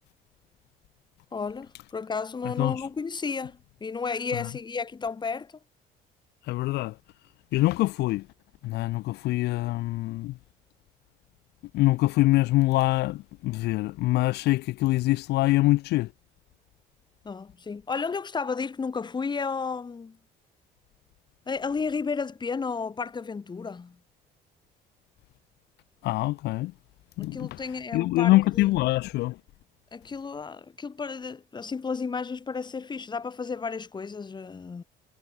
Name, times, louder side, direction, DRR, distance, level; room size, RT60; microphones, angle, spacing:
voice 1, 1.3-5.5 17.2-20.2 21.5-24.0 27.2-28.7 29.9-34.8, left 5 dB, 25° left, 2.1 m, -32 dB
voice 2, 2.4-2.8 4.3-4.5 6.4-7.0 7.5-8.3 8.6-10.4 11.7-16.1 26.0-26.7 27.2-27.6 27.9-29.4, left 18 dB, 80° left, 0.9 m, -24 dB
cardioid pair, 110°, 17 cm